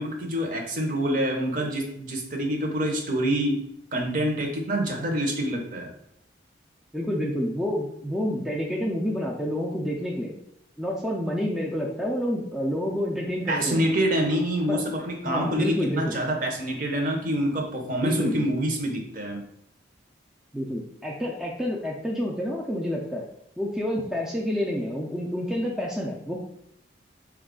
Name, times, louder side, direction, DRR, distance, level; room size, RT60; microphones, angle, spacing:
voice 1, 0.0-3.6 3.9-5.9 13.5-19.4, equal, 45° right, 1 dB, 0.7 m, -26 dB
voice 2, 6.9-10.3 10.8-13.9 14.7-14.8 15.2-16.2 18.0-18.5 20.5-23.3 23.6-26.4, equal, ahead, -3 dB, 0.4 m, -28 dB
4.1 x 2.3 x 3.6 m, 0.76 s
head